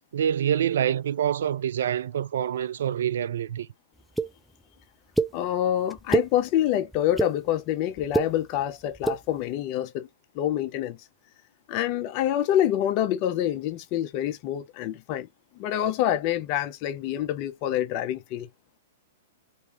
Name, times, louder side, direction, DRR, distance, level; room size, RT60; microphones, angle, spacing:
voice 1, 0.1-3.7, right 9 dB, 70° right, 0.3 m, -26 dB
sound 1, 4.2-4.3 5.2-5.3 5.9-6.3 6.9-7.3 8.0-8.3 8.9-9.2, right 3 dB, ahead, 0.5 m, -24 dB
voice 2, 5.3-10.1 10.3-11.0 11.7-15.3 15.6-18.5, left 11 dB, 45° left, 0.7 m, -26 dB
3.0 x 3.0 x 2.8 m
hypercardioid pair, 125°, 0 cm